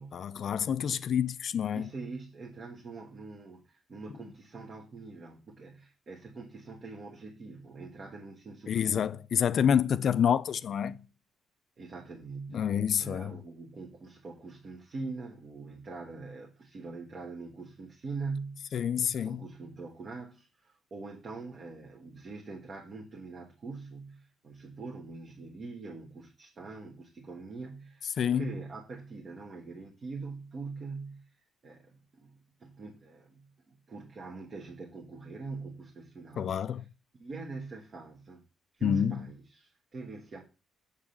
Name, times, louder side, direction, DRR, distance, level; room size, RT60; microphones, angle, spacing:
voice 1, 0.1-1.8 8.7-11.0 12.5-13.3 18.7-19.4 28.2-28.5 36.4-36.8 38.8-39.2, left 8 dB, 60° left, 0.3 m, -28 dB
voice 2, 1.7-9.2 11.8-12.7 13.0-31.3 31.6-36.9 37.1-38.4 38.7-40.4, right 4 dB, 45° right, 1.3 m, -43 dB
7.1 x 3.7 x 6.3 m
cardioid pair, 95°, 0 cm